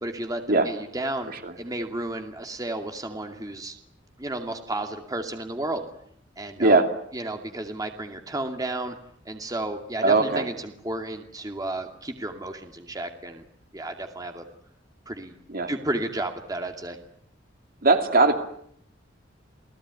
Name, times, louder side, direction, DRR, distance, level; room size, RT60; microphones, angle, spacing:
voice 1, 0.0-3.8 4.2-5.8 6.4-6.8 7.1-9.0 9.3-13.4 13.7-14.4 15.1-15.3 15.7-17.0, right 2 dB, 20° right, 4 dB, 2.5 m, -32 dB
voice 2, 6.6-6.9 10.0-10.4 15.5-15.7 17.8-18.4, right 3 dB, 50° right, 6 dB, 2.7 m, -19 dB
29.0 x 18.5 x 9.7 m, 0.69 s
head